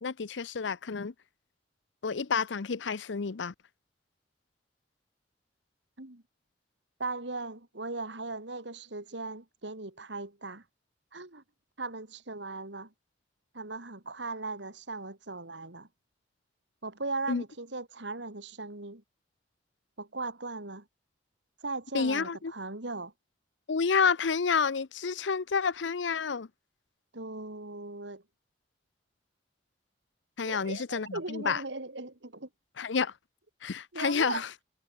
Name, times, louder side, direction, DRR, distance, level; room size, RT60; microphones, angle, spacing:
voice 1, 0.0-1.1 2.0-3.5 17.3-17.4 21.9-22.5 23.7-26.5 30.4-31.6 32.8-33.1 33.6-34.5, left 5 dB, 80° left, 0.6 m, -29 dB
voice 2, 7.0-10.6 11.1-11.4 11.8-12.9 13.5-15.9 16.8-19.0 20.0-20.8 21.6-23.1 27.1-28.2 30.5-32.5 33.9-34.4, right 3 dB, 75° right, 2.7 m, -38 dB
head